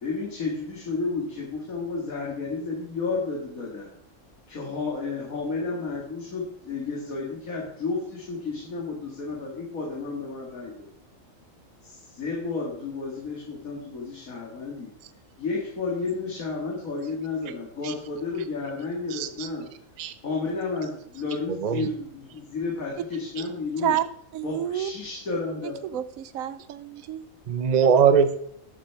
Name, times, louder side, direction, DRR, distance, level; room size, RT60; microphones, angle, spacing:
voice 1, 0.0-3.9 4.5-10.9 11.8-14.9 15.4-19.6 20.2-24.0 24.4-26.0, left 4 dB, 90° left, -2 dB, 2.4 m, -32 dB
voice 2, 19.1-19.5 20.0-20.1 21.6-21.9 27.5-28.4, right 6 dB, 40° right, 11 dB, 0.7 m, -21 dB
voice 3, 24.3-24.9 25.9-27.3, right 12 dB, 85° right, 14 dB, 1.1 m, -29 dB
12.0 x 7.3 x 4.7 m, 0.71 s
omnidirectional pair, 1.4 m